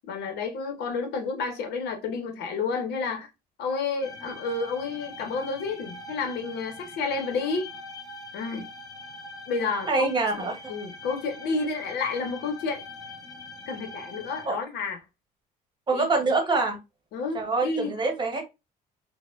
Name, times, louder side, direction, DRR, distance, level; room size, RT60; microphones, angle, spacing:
voice 1, 0.1-3.3 3.6-7.7 8.3-8.7 9.5-10.1 10.4-12.8 13.7-15.0 15.9-16.1 17.1-17.9, left 4 dB, 75° left, 0.8 m, -30 dB
sound 1, 4.0-14.5, left 2 dB, 20° left, 0.9 m, -43 dB
voice 2, 9.9-10.7 14.4-14.6 15.9-16.8 17.3-18.4, right 3 dB, 25° right, 1.0 m, -25 dB
4.0 x 2.1 x 2.4 m
cardioid pair, 110°, 17 cm